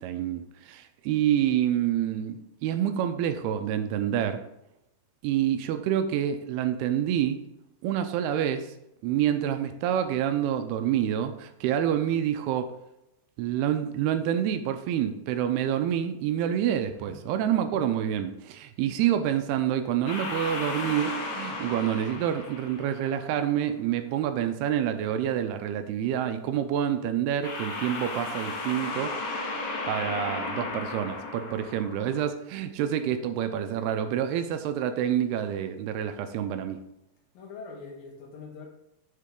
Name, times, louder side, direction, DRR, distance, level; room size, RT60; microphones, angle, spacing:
voice 1, 0.0-4.4 5.2-7.4 7.8-8.7 9.0-12.7 13.4-29.2 29.9-36.8, right 10 dB, 80° right, 8 dB, 2.4 m, -27 dB
voice 2, 17.0-17.4 37.3-38.7, left 4 dB, 65° left, 0 dB, 3.1 m, -43 dB
sound 1, 20.1-23.4 27.4-32.3, left 2 dB, 80° left, 3.6 m, -35 dB
7.5 x 6.7 x 3.7 m, 0.83 s
omnidirectional pair, 5.0 m